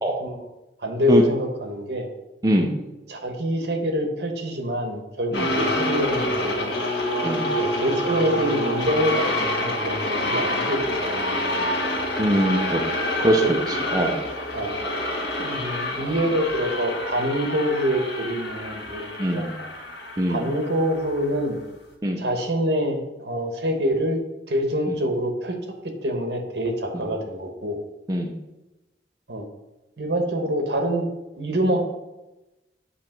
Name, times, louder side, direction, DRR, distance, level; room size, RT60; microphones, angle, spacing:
voice 1, 0.8-2.1 3.1-6.7 7.5-11.3 13.4-13.5 14.5-14.8 15.4-19.7 20.3-21.6 22.2-25.6 25.8-27.8 29.3-29.4 30.0-31.1 31.4-31.8, equal, 65° right, 4 dB, 1.1 m, -26 dB
voice 2, 2.4-2.8 5.3-5.5 7.2-7.5 12.2-12.8 13.2-14.2 19.2-19.5 20.2-20.5 22.0-22.2 24.9-25.0 26.9-27.0 28.1-28.4, right 1 dB, 20° right, 1 dB, 0.6 m, -22 dB
sound 1, 5.3-21.6, left 1 dB, 75° left, 1.5 m, -27 dB
8.2 x 2.9 x 5.9 m, 1.0 s
head